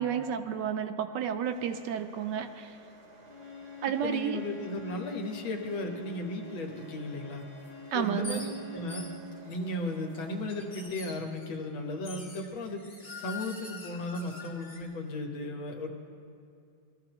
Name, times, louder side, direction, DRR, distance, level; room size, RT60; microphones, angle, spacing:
voice 1, 0.0-2.8 3.8-4.4 7.9-8.4, right 8 dB, 70° right, 8 dB, 1.1 m, -31 dB
sound 1, 1.4-10.9, right 2 dB, 40° right, 0.9 m, -54 dB
Bowed string instrument, 3.2-9.3, left 3 dB, 25° left, 0.8 m, -45 dB
voice 2, 4.0-7.5 7.9-9.0 9.4-12.8 13.2-15.9, left 2 dB, 85° left, 2 dB, 2.1 m, -35 dB
sound 2, 7.6-7.7 8.2-8.5 8.9-9.6 10.1-11.5 12.0-14.8, left 3 dB, 50° left, 2.7 m, -44 dB
20.5 x 14.0 x 3.0 m, 2.5 s
omnidirectional pair, 2.1 m